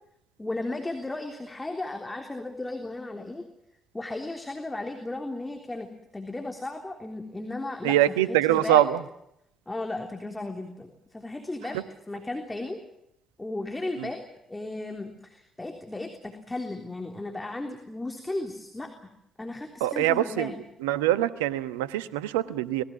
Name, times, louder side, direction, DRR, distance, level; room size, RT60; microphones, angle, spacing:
voice 1, 0.4-3.5 3.9-5.9 6.1-8.8 9.7-11.8 12.1-12.8 13.4-14.2 14.5-18.9 19.4-20.6, left 2 dB, 15° left, 3 dB, 3.4 m, -35 dB
voice 2, 7.8-9.0 14.0-14.1 19.8-20.5 20.8-22.8, right 13 dB, 80° right, 14 dB, 1.0 m, -24 dB
26.5 x 20.5 x 7.3 m, 0.81 s
figure-of-eight pair, 45°, 0 cm